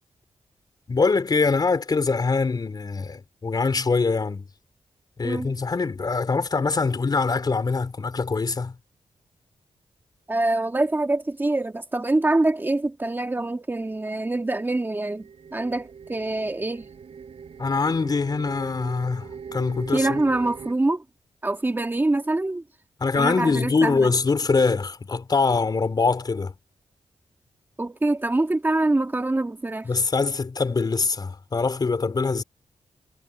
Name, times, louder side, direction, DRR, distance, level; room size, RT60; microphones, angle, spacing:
voice 1, 0.9-4.5 5.2-8.8 17.6-20.2 23.0-26.5 29.8-32.4, left 4 dB, 35° left, 3.9 m, -23 dB
voice 2, 10.3-15.3 15.5-16.8 19.9-21.0 21.4-22.6 23.1-24.1 27.8-29.9, right 2 dB, 20° right, 2.0 m, -24 dB
sound 1, 15.2-20.7, right 6 dB, 60° right, 5.0 m, -41 dB
wide cardioid pair, 135°, 11 cm